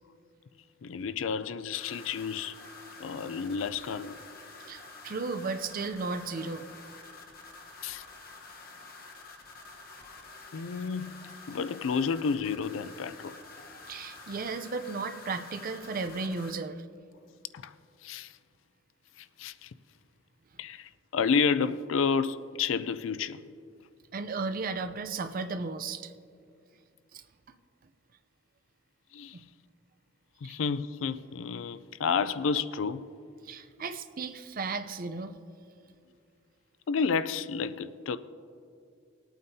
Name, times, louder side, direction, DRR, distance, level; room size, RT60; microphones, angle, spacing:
voice 1, 0.8-2.6 3.0-4.2 7.8-8.0 10.5-11.1 11.5-13.3 17.5-17.7 18.0-18.3 19.2-19.7 20.6-23.4 29.1-29.4 30.4-33.1 36.9-38.2, left 5 dB, 85° left, 0.4 m, -30 dB
sound 1, 1.7-16.5, left 3 dB, 50° left, 1.1 m, -48 dB
voice 2, 4.7-6.7 13.9-16.8 24.1-26.1 27.1-27.2 30.4-30.6 33.4-35.3, right 4 dB, 45° right, 0.5 m, -35 dB
20.5 x 8.8 x 2.7 m
head